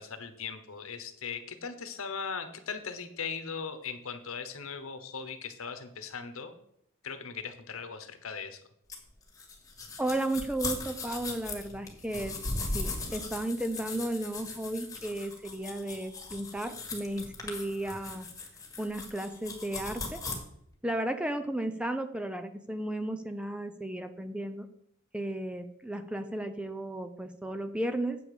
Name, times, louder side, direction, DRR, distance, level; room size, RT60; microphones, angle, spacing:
voice 1, 0.0-6.6 7.0-8.6, left 6 dB, 75° left, 9 dB, 1.1 m, -39 dB
sound 1, 8.9-20.3, left 3 dB, 15° left, 1.8 m, -39 dB
voice 2, 10.0-12.4 12.7-18.3 18.8-20.2 20.8-24.7 25.1-28.2, right 1 dB, 5° right, 9 dB, 0.5 m, -34 dB
8.5 x 7.2 x 4.9 m, 0.72 s
head